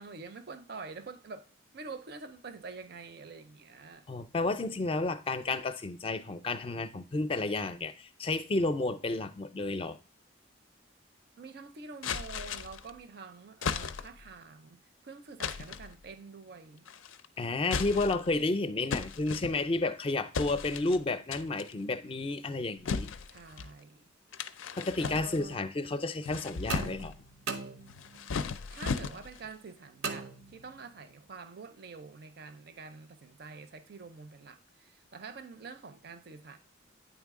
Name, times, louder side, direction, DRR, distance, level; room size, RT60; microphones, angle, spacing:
voice 1, 0.0-1.5 1.7-4.1 11.4-16.9 23.3-24.1 25.0-25.6 28.7-36.6, right 4 dB, 55° right, 0.5 m, -47 dB
voice 2, 4.1-10.0 17.4-23.1 24.8-27.1, left 2 dB, 30° left, 0.4 m, -31 dB
sound 1, 12.0-12.9 13.6-14.3 15.4-15.9 16.9-17.3 17.6-18.4 18.9-19.9 20.3-21.0 21.3-21.7 22.9-23.7 24.3-25.6 26.1-27.2 27.9-29.5, left 5 dB, 85° left, 0.4 m, -36 dB
sound 2, 26.7-28.3 30.0-31.0, right 4 dB, 90° right, 0.7 m, -39 dB
9.0 x 3.6 x 3.6 m
head